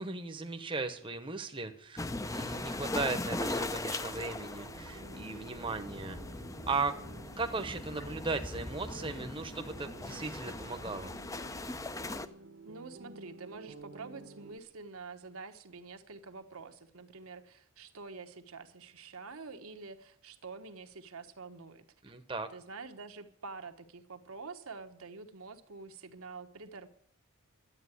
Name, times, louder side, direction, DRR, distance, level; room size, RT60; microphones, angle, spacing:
voice 1, 0.0-6.2 6.7-7.0 7.4-11.1 22.0-22.5, right 3 dB, 25° right, 7 dB, 0.9 m, -37 dB
sound 1, 2.0-12.3, left 2 dB, 15° left, 0.5 m, -39 dB
sound 2, 4.1-14.6, right 3 dB, 65° right, 1.1 m, -51 dB
voice 2, 12.6-21.9 22.5-26.9, right 4 dB, 80° right, 7 dB, 1.3 m, -47 dB
11.5 x 8.8 x 9.8 m, 0.62 s
head